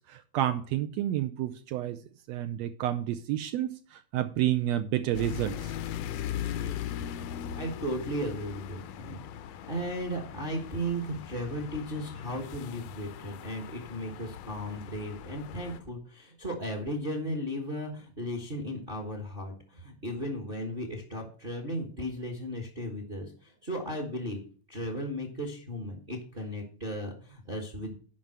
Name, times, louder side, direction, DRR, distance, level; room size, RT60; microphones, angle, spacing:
voice 1, 0.1-2.0 2.3-5.7, right 12 dB, 80° right, 1.7 m, -30 dB
sound 1, 5.1-15.8, left 10 dB, 75° left, 1.6 m, -39 dB
voice 2, 6.5-7.0 7.5-24.4 24.7-28.0, equal, 35° right, 0.9 m, -36 dB
7.3 x 5.5 x 7.3 m
omnidirectional pair, 3.3 m